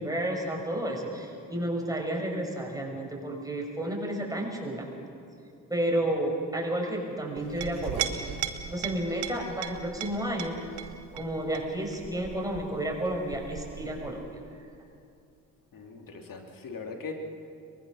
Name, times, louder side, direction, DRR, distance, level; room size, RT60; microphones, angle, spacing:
voice 1, 0.0-4.9 5.7-8.3 8.7-10.6 11.1-14.2, right 1 dB, 10° right, 0 dB, 6.1 m, -31 dB
Chink clink, 7.4-14.5, right 9 dB, 75° right, 1.3 m, -38 dB
voice 2, 15.7-17.1, left 5 dB, 55° left, 3 dB, 3.2 m, -40 dB
23.0 x 21.5 x 6.6 m, 2.5 s
hypercardioid pair, 45°, 40 cm